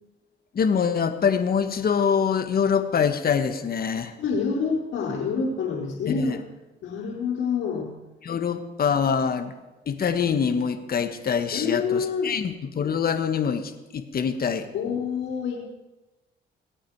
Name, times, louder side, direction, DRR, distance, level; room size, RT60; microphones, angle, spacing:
voice 1, 0.5-4.1 6.1-6.4 8.2-9.5 9.9-14.7, left 6 dB, 50° left, 8 dB, 1.5 m, -24 dB
voice 2, 4.2-6.4 6.8-7.9 11.5-12.3 14.7-15.6, left 5 dB, 85° left, -6 dB, 4.1 m, -27 dB
25.5 x 8.7 x 4.8 m, 1.0 s
cardioid pair, 90°, 20 cm